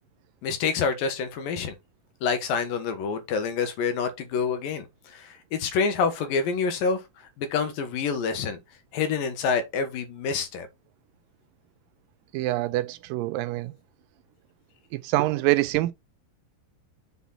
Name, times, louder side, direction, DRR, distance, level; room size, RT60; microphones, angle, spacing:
voice 1, 0.4-1.8 2.2-7.0 7.4-8.6 8.9-10.7, left 5 dB, 75° left, 3.0 m, -27 dB
voice 2, 12.3-13.7 14.9-15.9, right 17 dB, 80° right, 2.2 m, -25 dB
7.0 x 4.2 x 5.6 m
omnidirectional pair, 4.2 m